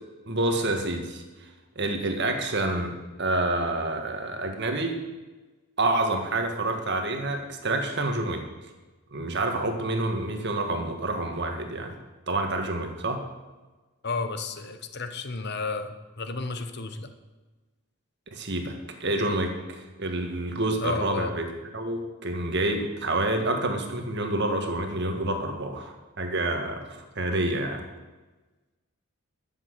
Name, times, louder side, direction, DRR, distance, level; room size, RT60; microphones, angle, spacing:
voice 1, 0.3-1.2 1.8-2.9 3.2-5.0 5.8-8.4 9.1-11.9 12.3-13.2 18.3-18.7 19.0-21.5 21.7-26.9 27.2-27.8, right 2 dB, 50° right, 4 dB, 1.7 m, -28 dB
voice 2, 14.0-17.1 20.8-21.3, left 3 dB, 50° left, 9 dB, 1.0 m, -32 dB
12.5 x 7.5 x 7.9 m, 1.2 s
head